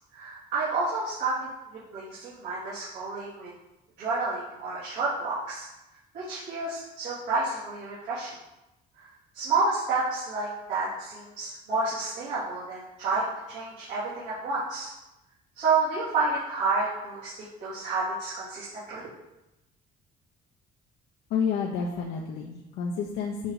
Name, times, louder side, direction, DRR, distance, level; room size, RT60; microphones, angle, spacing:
voice 1, 0.1-3.5 4.0-5.7 6.1-8.4 9.0-9.1 9.3-14.9 15.5-19.1, right 3 dB, 90° right, -10 dB, 3.2 m, -30 dB
voice 2, 21.3-23.5, left 6 dB, 80° left, 0 dB, 1.0 m, -30 dB
9.4 x 5.0 x 5.0 m, 0.96 s
cardioid pair, 110°, 17 cm